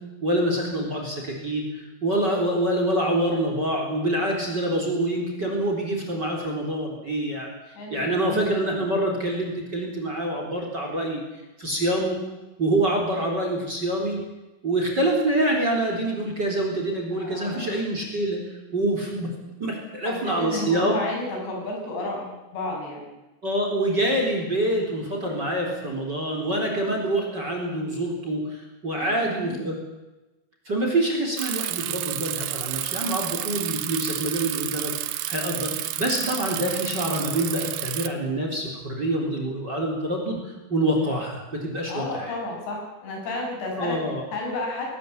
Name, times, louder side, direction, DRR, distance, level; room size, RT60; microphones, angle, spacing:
voice 1, 0.0-1.7 2.0-7.5 7.9-11.2 11.6-12.2 12.6-14.2 14.6-18.4 18.7-19.3 19.6-21.0 23.4-29.8 30.7-42.3 43.8-44.2, right 1 dB, 25° right, 1 dB, 4.1 m, -26 dB
voice 2, 7.8-8.5 17.1-17.7 20.0-23.0 29.0-29.7 41.0-41.2 41.9-44.0 44.3-44.9, left 2 dB, 70° left, 0 dB, 8.4 m, -32 dB
Bicycle, 31.4-38.1, right 15 dB, 75° right, 2.5 m, -30 dB
20.5 x 19.0 x 8.7 m, 1.1 s
omnidirectional pair, 5.0 m